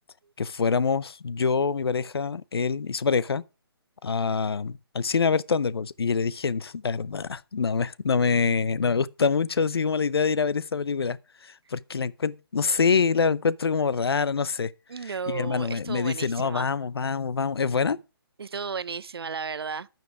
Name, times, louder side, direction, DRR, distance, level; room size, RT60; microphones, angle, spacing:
voice 1, 0.4-3.4 4.0-14.7 15.0-18.0, left 5 dB, 75° left, 0.7 m, -25 dB
voice 2, 14.9-16.7 18.4-19.9, right 5 dB, 75° right, 0.7 m, -34 dB
10.5 x 9.1 x 4.9 m
figure-of-eight pair, 145°, 13 cm